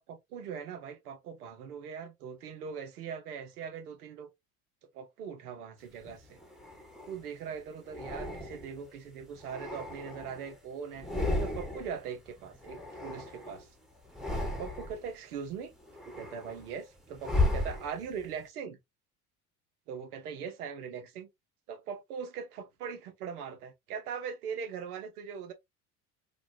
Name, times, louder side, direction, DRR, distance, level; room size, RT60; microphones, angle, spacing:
voice 1, 0.0-4.3 4.9-6.4 7.1-11.1 11.4-13.7 14.6-15.7 16.1-18.8 19.9-21.3 21.7-25.5, right 7 dB, 80° right, 0.9 m, -41 dB
sound 1, 6.0-7.2 7.9-8.9 9.3-10.6 10.9-12.0 12.3-13.6 14.0-15.1 15.5-18.3, left 2 dB, ahead, 1.1 m, -35 dB
4.0 x 2.4 x 2.7 m
hypercardioid pair, 65°, 45 cm